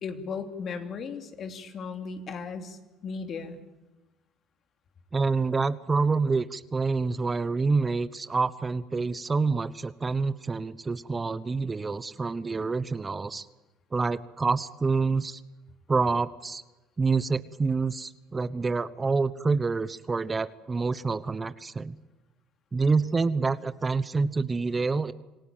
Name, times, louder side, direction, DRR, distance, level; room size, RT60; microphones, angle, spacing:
voice 1, 0.0-3.6, left 5 dB, 50° left, 6 dB, 3.1 m, -36 dB
voice 2, 5.1-13.5 13.9-15.4 15.9-16.6 17.0-22.0 22.7-25.1, right 4 dB, 25° right, 15 dB, 1.0 m, -27 dB
26.5 x 17.5 x 9.1 m, 1.1 s
supercardioid pair, 75°, 0 cm